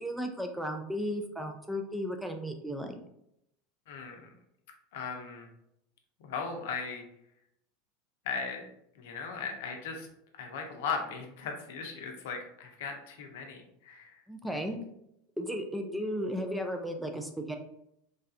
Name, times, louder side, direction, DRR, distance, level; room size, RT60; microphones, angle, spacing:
voice 1, 0.0-2.9 14.3-14.8 15.4-17.6, equal, 5° right, 4 dB, 0.4 m, -34 dB
voice 2, 3.9-4.3 4.9-5.5 6.2-7.0 8.2-8.7 8.9-10.1 10.4-14.2, left 5 dB, 75° left, 3 dB, 0.6 m, -37 dB
3.2 x 2.3 x 2.7 m, 0.77 s
hypercardioid pair, 100°, 0 cm